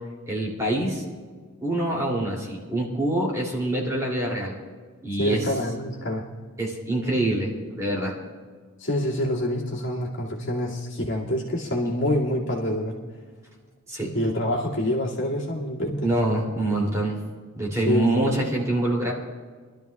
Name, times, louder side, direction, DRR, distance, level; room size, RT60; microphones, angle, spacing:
voice 1, 0.3-1.0 1.6-4.5 5.0-5.5 6.6-8.1 11.8-11.9 13.9-14.1 16.0-17.2 17.5-19.1, right 1 dB, 15° right, -3 dB, 2.8 m, -25 dB
voice 2, 5.2-6.3 8.8-12.9 14.1-16.1 17.9-18.2, left 1 dB, 55° left, -4 dB, 2.3 m, -26 dB
25.0 x 12.5 x 2.4 m, 1.5 s
head